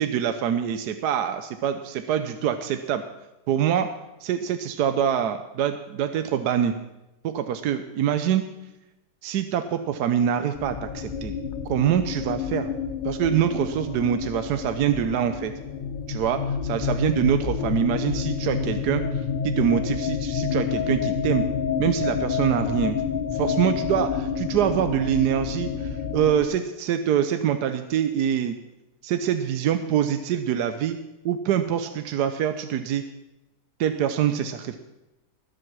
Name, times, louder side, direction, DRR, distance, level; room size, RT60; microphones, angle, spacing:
voice 1, 0.0-3.0 3.5-3.9 4.2-6.7 7.2-8.4 9.2-11.3 11.7-12.7 13.0-15.5 16.1-21.4 21.8-23.0 23.3-28.6 29.0-31.0 31.2-33.0 33.8-34.8, right 9 dB, 80° right, 9 dB, 1.3 m, -25 dB
sound 1, 10.5-26.4, left 7 dB, 50° left, 0.6 m, -29 dB
20.0 x 7.8 x 6.1 m, 0.96 s
omnidirectional pair, 1.8 m